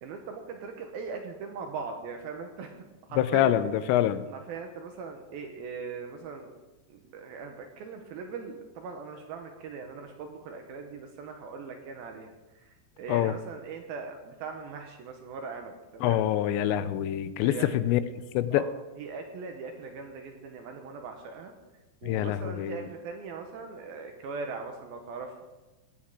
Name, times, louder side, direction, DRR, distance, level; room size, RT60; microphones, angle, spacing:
voice 1, 0.0-2.8 3.1-3.5 3.9-4.0 4.3-6.5 6.9-16.2 17.4-17.8 18.5-18.7 19.0-21.5 22.0-25.4, right 5 dB, 75° right, 4 dB, 2.4 m, -40 dB
voice 2, 3.2-4.3 13.1-13.3 16.0-18.0 18.3-18.6 22.0-22.8, left 12 dB, 90° left, 13 dB, 2.8 m, -25 dB
18.5 x 8.7 x 3.7 m, 1.1 s
omnidirectional pair, 5.1 m